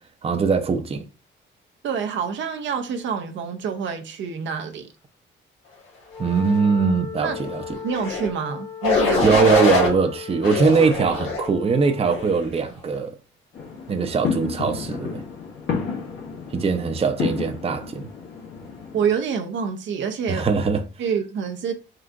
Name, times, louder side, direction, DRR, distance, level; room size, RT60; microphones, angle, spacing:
voice 1, 0.2-1.0 6.2-7.6 9.2-13.1 13.9-15.2 16.5-18.1 20.3-20.8, right 5 dB, 30° right, 0.6 m, -21 dB
voice 2, 1.8-4.9 7.2-7.4 7.8-9.3 18.9-20.5 21.0-21.7, right 6 dB, 70° right, 0.7 m, -27 dB
Wind instrument woodwind instrument, 6.0-12.3, left 6 dB, 15° left, 0.4 m, -37 dB
sound 1, 7.9-8.3 8.8-9.9 10.4-11.5 12.1-12.4, left 4 dB, 90° left, 1.4 m, -23 dB
sound 2, 13.5-19.1, left 5 dB, 65° left, 1.6 m, -31 dB
3.8 x 2.5 x 4.5 m
cardioid pair, 90°, 20 cm